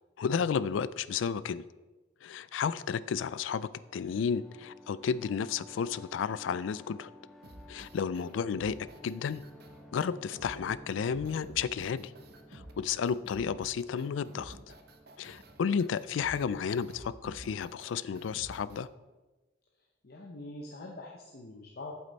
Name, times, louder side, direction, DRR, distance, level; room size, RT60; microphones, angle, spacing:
voice 1, 0.2-1.6 2.2-7.1 7.7-8.8 9.0-9.4 9.9-12.1 12.5-14.6 15.2-18.9, left 6 dB, 85° left, 17 dB, 0.3 m, -32 dB
sound 1, 3.7-19.1, equal, ahead, 1.1 m, -55 dB
sound 2, 7.4-18.9, right 1 dB, 55° right, 0.9 m, -51 dB
voice 2, 20.0-22.0, left 2 dB, 55° left, 0 dB, 0.9 m, -44 dB
8.5 x 7.6 x 4.1 m, 1.2 s
head